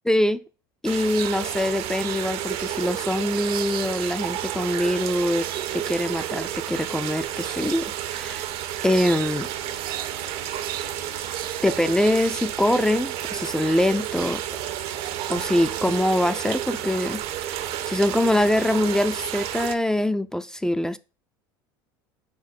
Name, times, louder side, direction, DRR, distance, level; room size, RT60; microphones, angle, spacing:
voice 1, 0.1-0.4 0.8-5.5 5.7-8.5 8.8-9.5 11.6-14.4 15.3-21.0, left 1 dB, 5° left, 0.4 m, -24 dB
sound 1, 0.8-19.7, right 12 dB, 55° right, 0.7 m, -31 dB
sound 2, 1.1-16.0, right 12 dB, 90° right, 0.4 m, -41 dB
sound 3, 6.3-19.8, left 7 dB, 85° left, 1.3 m, -52 dB
5.9 x 4.8 x 4.5 m
hypercardioid pair, 90°, 12 cm